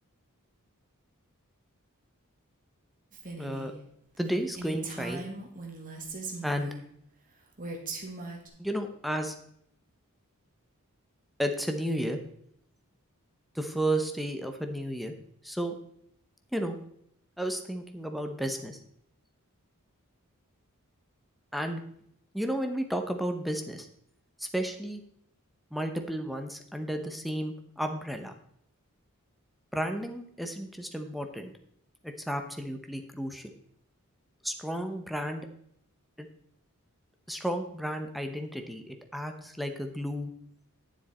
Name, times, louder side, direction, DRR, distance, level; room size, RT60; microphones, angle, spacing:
Female speech woman speaking, 3.1-3.7 4.1-4.2 4.5-6.8 7.6-8.5, right 3 dB, 40° right, 1.7 m, -39 dB
voice 1, 3.4-3.7 4.2-5.2 6.4-6.7 8.6-9.3 11.4-12.2 13.5-15.1 15.4-15.8 16.5-16.8 17.4-18.8 21.5-21.8 22.3-23.9 24.4-25.0 25.7-28.3 29.7-31.5 32.0-33.5 34.4-35.5 36.2-36.3 37.3-40.3, right 1 dB, ahead, 5 dB, 0.8 m, -32 dB
10.0 x 7.1 x 4.2 m, 0.70 s
head